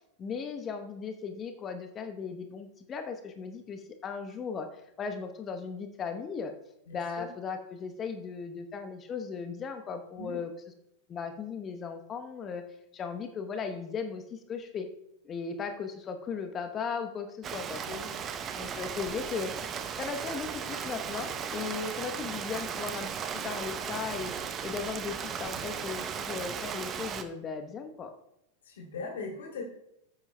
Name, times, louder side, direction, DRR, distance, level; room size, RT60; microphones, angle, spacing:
voice 1, 0.2-6.5 6.9-10.5 11.1-12.6 12.9-14.9 15.2-17.8 18.6-28.1, left 5 dB, 25° left, 7 dB, 0.9 m, -37 dB
voice 2, 6.9-7.3 10.2-10.4 17.8-18.1 28.6-29.6, left 3 dB, 60° left, -1 dB, 2.6 m, -40 dB
Rain, 17.4-27.2, right 7 dB, 25° right, 0.7 m, -36 dB
14.0 x 8.2 x 2.2 m, 0.79 s
figure-of-eight pair, 90°, 0 cm